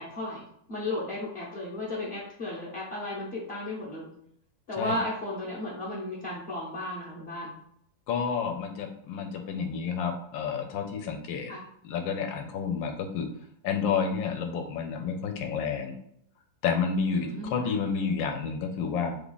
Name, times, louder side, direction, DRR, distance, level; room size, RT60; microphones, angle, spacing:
voice 1, 0.0-4.1 4.7-7.5 11.5-11.6 17.1-17.7, left 1 dB, 50° left, -6 dB, 0.8 m, -34 dB
voice 2, 8.1-11.5 11.8-13.3 13.6-15.9 16.6-19.2, left 6 dB, 80° left, 5 dB, 1.3 m, -30 dB
3.3 x 2.3 x 3.9 m, 0.70 s
omnidirectional pair, 2.0 m